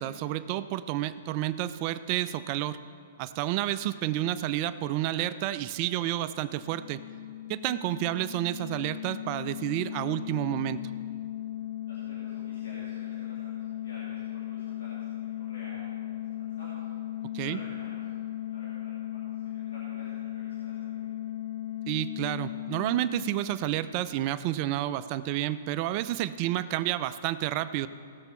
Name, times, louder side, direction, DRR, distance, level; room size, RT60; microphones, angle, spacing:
voice 1, 0.0-2.8 3.2-7.0 7.5-10.8 17.3-17.6 21.9-27.9, right 13 dB, 40° right, 14 dB, 0.4 m, -30 dB
sound 1, 6.5-24.0, left 13 dB, 55° left, 0.5 m, -37 dB
voice 2, 11.8-16.8 17.1-21.1, equal, 90° left, -8 dB, 2.8 m, -51 dB
17.5 x 6.8 x 4.4 m, 2.3 s
hypercardioid pair, 130°, 0 cm